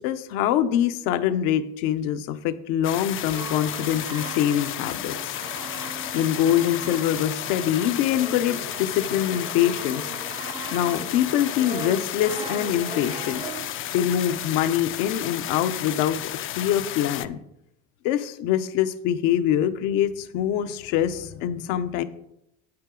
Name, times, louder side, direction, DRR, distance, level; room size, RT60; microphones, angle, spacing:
voice 1, 0.0-5.3 6.1-10.1 10.7-13.4 13.9-16.2 16.5-17.4 18.0-22.0, left 11 dB, 75° left, 10 dB, 0.8 m, -24 dB
sound 1, 2.8-17.3, left 12 dB, 40° left, 0.4 m, -33 dB
Brass instrument, 3.1-13.9, right 5 dB, 15° right, 0.5 m, -39 dB
8.7 x 8.6 x 3.8 m, 0.83 s
supercardioid pair, 105°, 32 cm